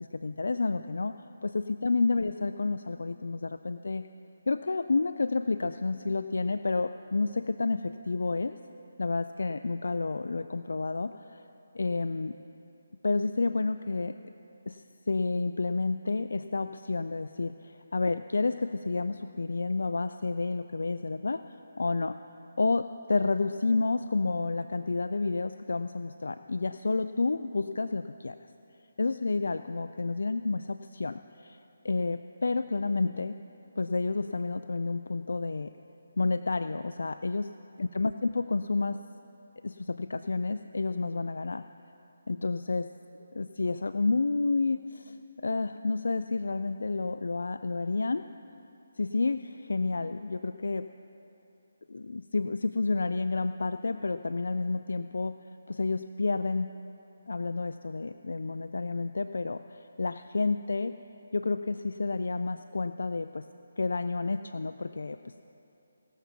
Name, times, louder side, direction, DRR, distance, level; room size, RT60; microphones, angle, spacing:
voice 1, 0.1-1.2 1.4-4.1 4.5-8.5 9.0-11.4 11.7-12.4 13.0-14.2 14.7-21.4 21.8-22.2 22.6-28.4 29.0-31.6 31.8-33.4 33.8-35.8 36.2-37.5 37.8-39.0 39.6-41.6 42.3-42.9 43.3-48.3 49.0-50.9 51.9-55.4 55.7-56.7 57.3-61.0 61.3-63.5 63.8-65.3, left 3 dB, 70° left, 10 dB, 0.3 m, -30 dB
18.5 x 7.1 x 5.9 m, 2.9 s
figure-of-eight pair, 155°, 0 cm